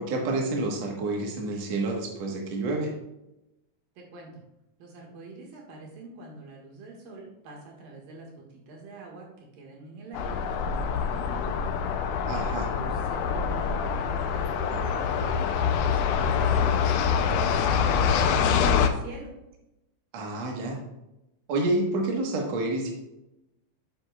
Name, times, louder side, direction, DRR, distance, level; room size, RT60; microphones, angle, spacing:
voice 1, 0.0-2.9 12.3-12.7 20.1-20.8 21.5-22.9, right 2 dB, 60° right, 0 dB, 2.3 m, -28 dB
voice 2, 4.0-4.4 4.8-11.4 12.3-19.4, right 2 dB, 90° right, -1 dB, 3.4 m, -44 dB
sound 1, 10.1-18.9, left 6 dB, 80° left, 2.1 m, -25 dB
9.5 x 7.5 x 2.4 m, 0.92 s
omnidirectional pair, 3.9 m